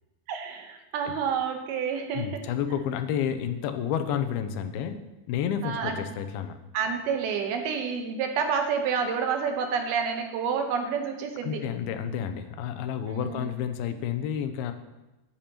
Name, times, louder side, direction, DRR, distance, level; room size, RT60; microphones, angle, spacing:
voice 1, 0.3-2.4 5.6-6.0 6.7-11.6 13.0-13.5, right 6 dB, 90° right, 4 dB, 3.0 m, -29 dB
voice 2, 2.1-5.0 5.3-6.6 11.4-14.7, left 8 dB, 90° left, 9 dB, 2.6 m, -30 dB
14.0 x 9.0 x 2.9 m, 1.0 s
omnidirectional pair, 4.3 m